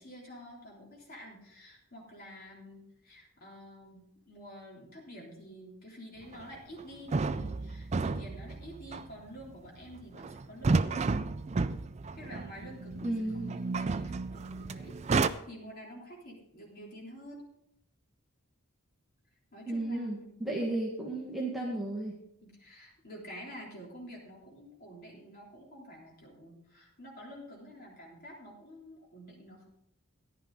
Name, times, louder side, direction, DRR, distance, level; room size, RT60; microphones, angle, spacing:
voice 1, 0.0-11.1 12.1-13.2 13.5-17.5 19.5-21.2 22.4-29.7, equal, 40° left, -2 dB, 3.4 m, -49 dB
sound 1, 6.3-6.4 6.8-6.9 7.1-15.3, right 3 dB, 30° right, 0.3 m, -32 dB
voice 2, 13.0-13.5 19.7-22.2, right 2 dB, ahead, -4 dB, 1.5 m, -34 dB
14.0 x 10.5 x 3.9 m, 0.77 s
head